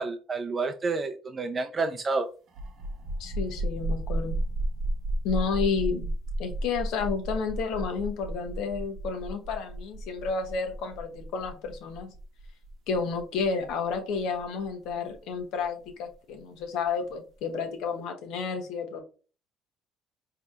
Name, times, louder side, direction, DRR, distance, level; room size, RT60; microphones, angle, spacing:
voice 1, 0.0-2.3, right 3 dB, 30° right, 4 dB, 0.5 m, -29 dB
sound 1, 2.5-15.9, right 1 dB, 60° right, 0.9 m, -33 dB
voice 2, 3.2-4.4 5.2-6.1 6.4-12.1 12.9-19.0, left 5 dB, 75° left, 5 dB, 1.0 m, -31 dB
4.7 x 2.9 x 2.4 m, 0.35 s
supercardioid pair, 90°, 0 cm